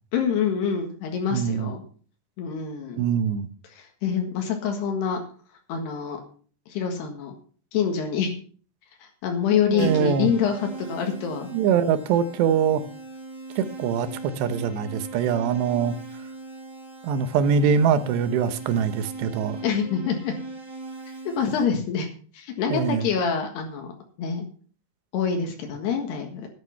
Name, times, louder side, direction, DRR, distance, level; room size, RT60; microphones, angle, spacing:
voice 1, 0.1-1.8 2.4-3.0 3.7-5.2 5.7-6.2 6.7-7.3 7.7-8.3 9.0-11.5 19.6-20.3 21.4-22.1 22.3-23.9 24.2-24.5 25.1-26.5, left 7 dB, 75° left, 3 dB, 3.7 m, -26 dB
voice 2, 1.3-1.7 3.0-3.5 9.7-10.3 11.5-12.8 13.6-15.9 17.0-19.6 22.7-23.0, right 7 dB, 90° right, 12 dB, 3.2 m, -23 dB
Keyboard (musical), 9.8-21.6, right 2 dB, 20° right, 2.5 m, -39 dB
11.5 x 9.5 x 5.7 m, 0.43 s
omnidirectional pair, 4.8 m